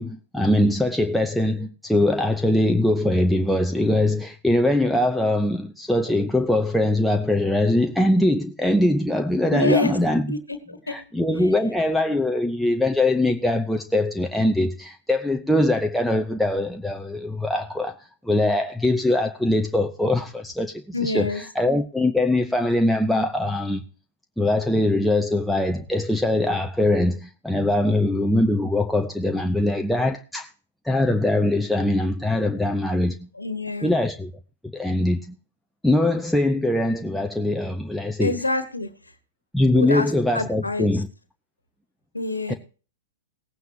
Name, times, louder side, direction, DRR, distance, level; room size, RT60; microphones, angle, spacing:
voice 1, 0.0-10.4 10.9-18.0 18.2-23.8 24.4-30.5 30.8-33.3 33.8-34.3 34.7-35.3 35.8-38.4 39.5-41.1 42.5-42.6, left 1 dB, ahead, 0.6 m, -22 dB
voice 2, 9.5-10.0 10.3-10.6 10.9-11.0 20.9-21.4 33.4-33.9 38.2-38.9 39.7-40.1 40.3-40.9 42.1-42.5, left 2 dB, 85° left, 1.3 m, -26 dB
18.0 x 9.2 x 2.8 m
figure-of-eight pair, 105°, 0 cm